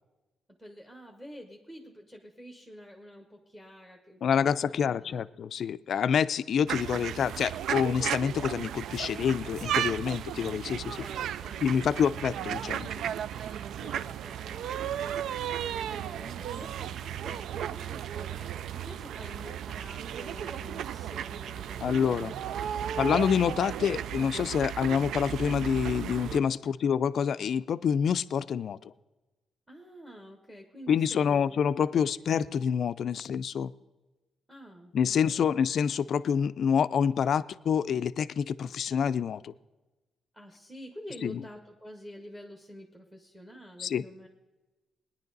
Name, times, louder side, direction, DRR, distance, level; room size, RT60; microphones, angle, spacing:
voice 1, 0.6-4.3 4.8-5.3 9.0-9.5 10.9-12.1 13.8-15.2 15.5-23.1 26.6-26.9 29.7-31.6 31.9-32.1 34.5-35.6 40.3-44.3, equal, 5° right, 2 dB, 1.1 m, -48 dB
voice 2, 4.2-11.0 11.6-12.9 21.8-22.3 23.0-28.8 30.9-33.7 34.9-39.5 41.2-41.4 43.8-44.1, left 7 dB, 50° left, 15 dB, 0.4 m, -27 dB
sound 1, 6.7-26.4, right 10 dB, 75° right, 0.3 m, -35 dB
20.5 x 10.0 x 4.0 m, 1.1 s
cardioid pair, 170°, 0 cm